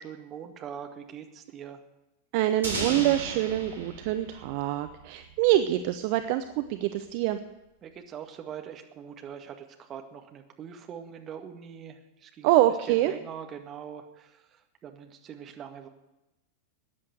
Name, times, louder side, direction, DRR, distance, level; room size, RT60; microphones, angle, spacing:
voice 1, 0.0-1.8 7.8-12.5 12.9-15.9, right 8 dB, 30° right, 5 dB, 1.8 m, -42 dB
voice 2, 2.3-7.4 12.4-13.1, right 14 dB, 45° right, 9 dB, 0.7 m, -25 dB
sound 1, 2.6-5.4, right 3 dB, 75° right, 3.7 m, -36 dB
14.0 x 9.8 x 7.8 m, 0.97 s
figure-of-eight pair, 90°, 0 cm